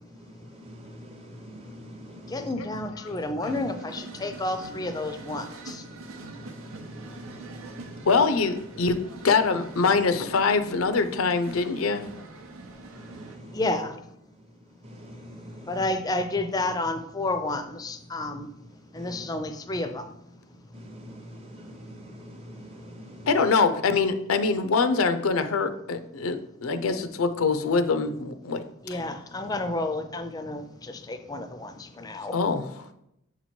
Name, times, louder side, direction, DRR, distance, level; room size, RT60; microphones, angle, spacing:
voice 1, 0.3-2.5 5.9-8.1 13.0-13.6 14.8-15.8 19.0-19.3 20.7-23.3, equal, 30° right, 5 dB, 0.7 m, -45 dB
voice 2, 2.3-5.8 13.5-13.9 15.7-18.5 18.9-20.0 28.8-32.4, left 2 dB, 20° left, 9 dB, 0.4 m, -30 dB
sound 1, 3.4-13.4, right 3 dB, 90° right, 0.7 m, -43 dB
voice 3, 8.1-12.1 23.3-28.6 28.9-29.0 32.3-32.6, left 4 dB, 90° left, 10 dB, 0.5 m, -24 dB
7.4 x 3.0 x 4.3 m, 0.80 s
head